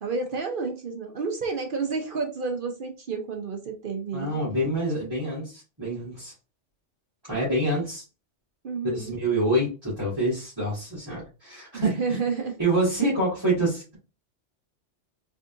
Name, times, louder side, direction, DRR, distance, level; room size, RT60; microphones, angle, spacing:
voice 1, 0.0-4.4 8.6-9.1 11.7-12.5, right 4 dB, 55° right, 3 dB, 0.8 m, -30 dB
voice 2, 4.1-6.3 7.3-8.0 8.8-12.2 12.6-13.9, right 1 dB, 20° right, -10 dB, 2.1 m, -26 dB
4.0 x 3.5 x 2.6 m, 0.32 s
omnidirectional pair, 1.2 m